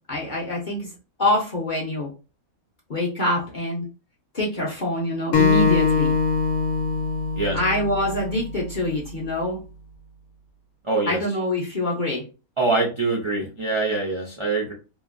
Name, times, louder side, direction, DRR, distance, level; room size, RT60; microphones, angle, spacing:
voice 1, 0.1-0.9 1.2-2.1 2.9-3.9 4.3-6.2 7.5-9.6 11.1-12.3, left 1 dB, 45° left, -3 dB, 0.6 m, -25 dB
Acoustic guitar, 5.3-8.6, left 5 dB, 65° left, 1.0 m, -22 dB
voice 2, 10.8-11.2 12.6-14.7, right 3 dB, 45° right, -2 dB, 0.3 m, -24 dB
2.9 x 2.5 x 2.5 m, 0.32 s
omnidirectional pair, 1.5 m